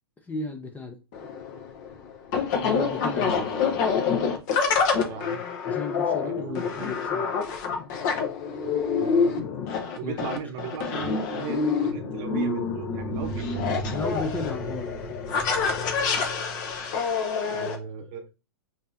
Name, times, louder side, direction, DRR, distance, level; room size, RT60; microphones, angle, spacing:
voice 1, 0.3-1.0 2.6-3.3 5.7-7.3 10.0-10.2 13.9-15.8, left 3 dB, 10° left, 4 dB, 0.5 m, -35 dB
sound 1, 1.1-17.7, left 5 dB, 45° left, 0.9 m, -27 dB
voice 2, 3.1-3.9 4.8-5.4 6.2-6.9 8.6-9.5 10.0-14.0 17.5-18.3, right 7 dB, 40° right, 6 dB, 0.8 m, -38 dB
sound 2, 7.0-7.1 12.5-17.0, right 3 dB, 75° left, 0.9 m, -37 dB
5.3 x 2.7 x 2.6 m, 0.30 s
hypercardioid pair, 130°, 14 cm